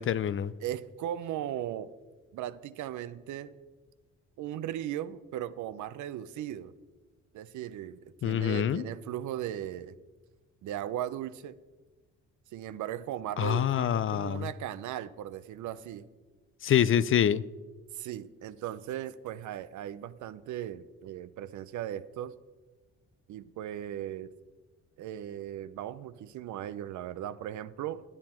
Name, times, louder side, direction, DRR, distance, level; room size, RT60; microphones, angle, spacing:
voice 1, 0.0-0.5 8.2-8.8 13.4-14.5 16.6-17.4, left 10 dB, 45° left, 0.4 m, -26 dB
voice 2, 0.6-1.9 2.3-3.5 4.4-6.7 7.3-10.0 10.6-11.6 12.5-16.1 17.9-22.3 23.3-24.3 25.0-28.0, right 11 dB, 75° right, 0.6 m, -37 dB
11.0 x 8.6 x 4.4 m
cardioid pair, 90°, 30 cm